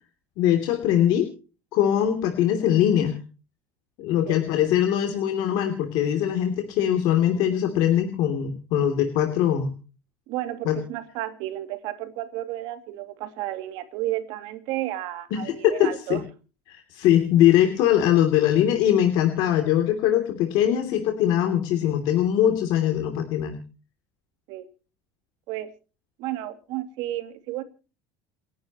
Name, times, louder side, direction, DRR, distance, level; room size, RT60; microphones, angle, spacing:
voice 1, 0.4-1.3 1.7-3.2 4.0-9.7 10.6-10.8 15.3-16.2 16.7-23.6, left 11 dB, 50° left, 2.9 m, -22 dB
voice 2, 10.3-16.2 24.5-24.7 25.5-25.7 26.2-27.6, right 14 dB, 55° right, 2.6 m, -32 dB
29.5 x 11.0 x 3.0 m
cardioid pair, 175°, 9 cm